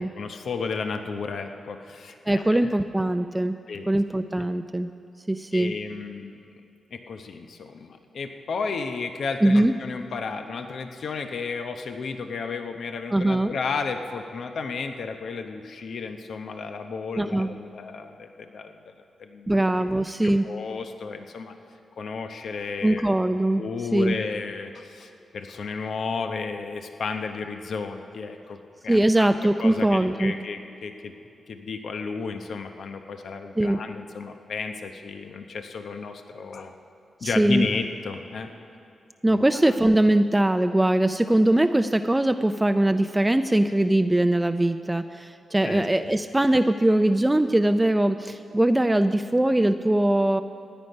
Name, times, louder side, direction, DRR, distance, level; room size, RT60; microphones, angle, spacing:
voice 1, 0.0-2.7 3.7-3.9 5.5-6.4 6.9-18.8 19.2-19.5 19.8-19.9 20.2-21.5 22.0-23.1 23.6-29.3 29.6-31.1 31.5-36.7 37.2-38.5 39.3-39.8 45.6-46.1, left 4 dB, 70° left, 6 dB, 0.8 m, -33 dB
voice 2, 2.3-3.6 3.9-4.9 5.3-5.7 9.4-9.7 13.1-13.5 17.2-17.5 19.5-20.5 22.8-23.6 23.9-24.1 28.9-30.4 33.6-33.8 37.2-37.7 39.2-50.4, right 1 dB, 15° right, 9 dB, 0.4 m, -21 dB
16.0 x 9.9 x 5.4 m, 2.6 s
cardioid pair, 55°, 0 cm